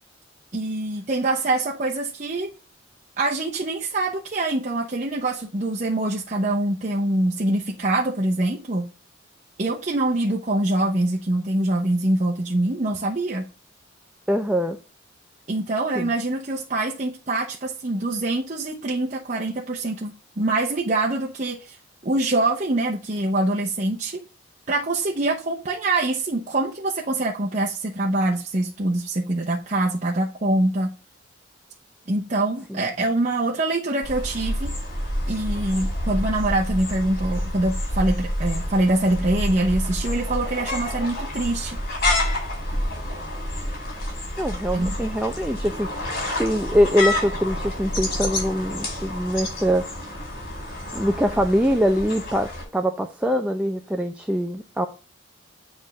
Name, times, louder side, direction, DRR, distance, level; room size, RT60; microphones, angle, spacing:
voice 1, 0.5-2.5 3.2-8.9 9.6-13.4 15.5-21.8 22.0-24.2 24.7-30.9 32.1-34.7 35.3-41.8 44.7-45.0, right 2 dB, 40° right, 0.9 m, -24 dB
voice 2, 14.3-14.8 15.9-16.1 32.7-32.9 44.4-49.9 50.9-54.9, equal, 5° right, 0.5 m, -23 dB
sound 1, 34.0-52.6, left 1 dB, 50° left, 4.3 m, -28 dB
8.4 x 3.6 x 6.5 m
head